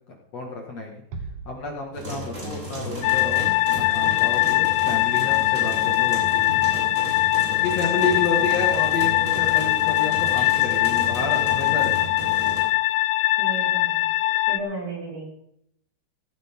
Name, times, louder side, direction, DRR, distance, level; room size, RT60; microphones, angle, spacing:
voice 1, 0.3-1.0 1.5-6.6 7.5-12.0, left 3 dB, 45° left, 1 dB, 2.4 m, -30 dB
Bass drum, 1.1-2.5, right 4 dB, 85° right, 1.4 m, -39 dB
sound 1, 1.9-12.6, equal, 15° right, 5.8 m, -34 dB
sound 2, 3.0-14.6, left 18 dB, 90° left, 2.2 m, -22 dB
voice 2, 7.9-8.5 13.4-14.1 14.5-15.3, right 3 dB, 40° right, -3 dB, 7.9 m, -34 dB
16.0 x 15.0 x 3.8 m, 0.72 s
omnidirectional pair, 5.3 m